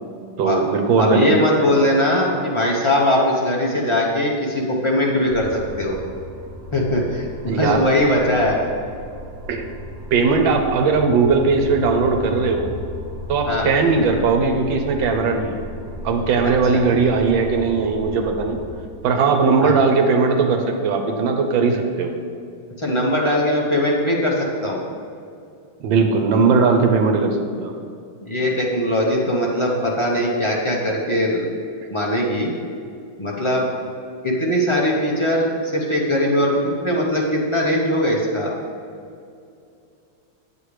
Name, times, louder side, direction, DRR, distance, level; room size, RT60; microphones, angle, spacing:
voice 1, 0.4-1.8 7.5-7.8 9.5-9.7 10.1-12.7 13.3-15.6 16.0-18.6 19.0-22.1 25.8-27.7, right 4 dB, 80° right, 4 dB, 1.5 m, -19 dB
voice 2, 1.0-6.0 6.7-8.6 13.5-13.7 16.7-16.8 19.6-19.7 22.8-24.8 28.2-31.5 31.9-32.5 33.2-33.7 34.2-38.6, left 1 dB, 35° left, -3 dB, 0.4 m, -20 dB
sound 1, 5.3-18.8, equal, 55° right, 1.5 m, -36 dB
8.4 x 7.6 x 3.3 m, 2.5 s
omnidirectional pair, 2.1 m